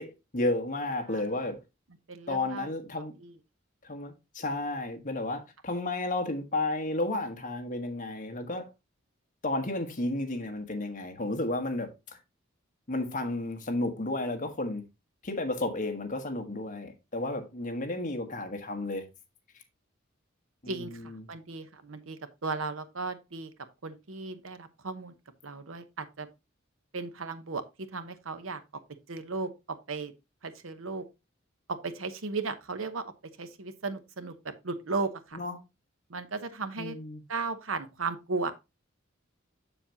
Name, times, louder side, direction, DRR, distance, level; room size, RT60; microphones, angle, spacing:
voice 1, 0.0-1.6 2.3-3.1 3.8-8.7 9.4-11.9 12.9-14.8 15.2-19.1 20.6-21.3 35.3-35.6 36.8-37.2, left 2 dB, 40° left, 1.3 m, -32 dB
voice 2, 1.1-1.4 2.1-2.7 3.0-3.4 20.7-23.5 23.8-25.1 25.4-26.3 26.9-28.6 29.1-30.1 30.4-31.1 31.7-33.0 33.4-35.4 36.1-37.0 37.3-38.5, right 4 dB, 90° right, 0.9 m, -36 dB
7.2 x 7.0 x 2.8 m
head